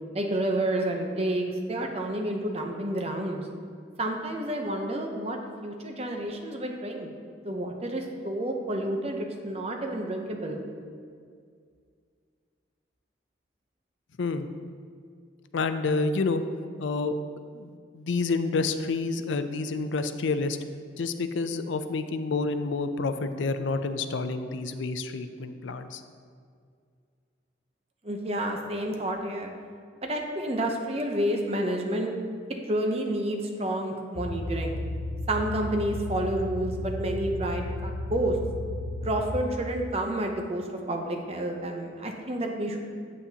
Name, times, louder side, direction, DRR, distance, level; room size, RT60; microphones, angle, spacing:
voice 1, 0.1-3.4 4.0-7.1 7.4-10.6 28.0-29.5 30.0-32.1 32.7-34.8 35.3-38.4 39.0-43.1, right 1 dB, 35° right, 2 dB, 0.7 m, -30 dB
voice 2, 15.5-16.4 16.8-17.2 17.5-20.6 21.0-26.0, left 3 dB, 80° left, 10 dB, 0.4 m, -29 dB
sound 1, 34.2-39.2, left 1 dB, 50° left, 0.8 m, -34 dB
8.3 x 8.2 x 2.8 m, 2.2 s
head